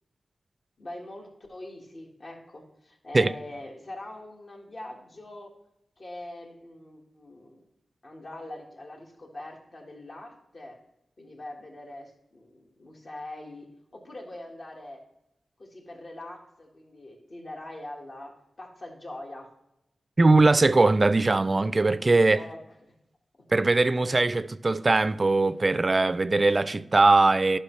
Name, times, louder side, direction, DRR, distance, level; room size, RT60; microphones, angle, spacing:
voice 1, 0.8-5.5 6.0-7.7 8.0-10.8 11.2-15.0 15.6-19.5 22.3-22.9 23.4-23.5, left 1 dB, 60° left, 1.7 m, -43 dB
voice 2, 20.2-22.4 23.5-27.6, right 3 dB, 45° right, 0.3 m, -21 dB
11.5 x 5.7 x 3.2 m
cardioid pair, 45°, 0 cm